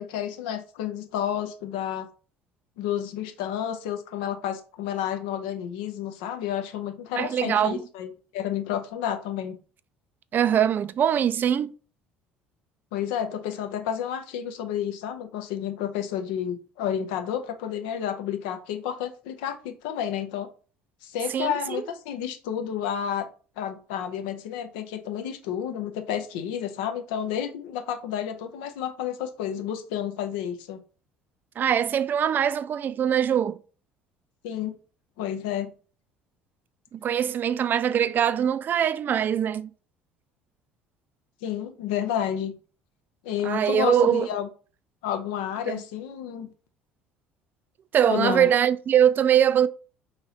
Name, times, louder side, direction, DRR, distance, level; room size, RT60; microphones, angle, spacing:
voice 1, 0.0-2.1 2.8-9.6 12.9-20.5 21.0-23.3 23.6-30.8 34.4-34.8 35.2-35.7 41.4-42.5 43.2-44.5 45.0-46.5 48.1-48.5, left 9 dB, 70° left, 0.6 m, -30 dB
voice 2, 7.2-7.8 10.3-11.7 21.3-21.8 31.6-33.6 36.9-39.7 43.4-44.3 45.7-45.8 47.9-49.7, right 9 dB, 40° right, 0.3 m, -22 dB
3.1 x 2.8 x 3.8 m
hypercardioid pair, 60°, 5 cm